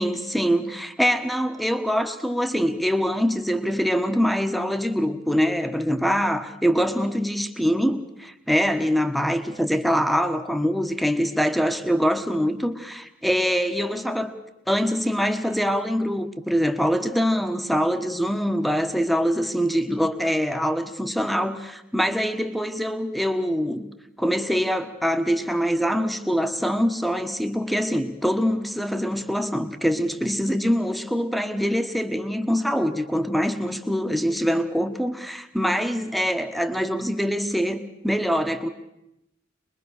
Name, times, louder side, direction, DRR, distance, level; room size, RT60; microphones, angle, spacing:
voice 1, 0.0-14.3 14.7-23.9 24.2-38.7, equal, ahead, 8 dB, 1.3 m, -24 dB
24.5 x 21.5 x 6.6 m, 0.87 s
head